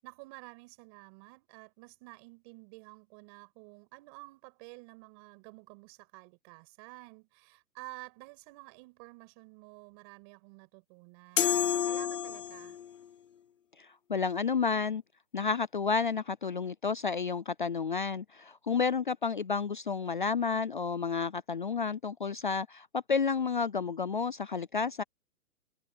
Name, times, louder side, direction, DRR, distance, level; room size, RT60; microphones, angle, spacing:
voice 1, 0.0-12.8, right 31 dB, 25° right, 7.4 m, -51 dB
sound 1, 11.4-12.9, left 9 dB, 55° left, 4.1 m, -29 dB
voice 2, 13.8-15.0 15.3-25.0, left 5 dB, 35° left, 0.5 m, -31 dB
hypercardioid pair, 165°, 45 cm